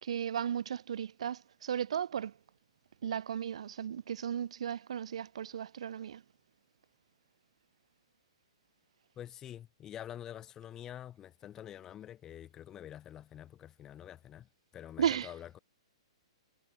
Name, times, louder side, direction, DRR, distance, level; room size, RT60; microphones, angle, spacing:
voice 1, 0.0-2.3 3.0-6.2 15.0-15.4, right 9 dB, 75° right, 0.4 m, -35 dB
voice 2, 9.2-15.6, left 11 dB, 15° left, 1.4 m, -47 dB
hypercardioid pair, 165°, 3 cm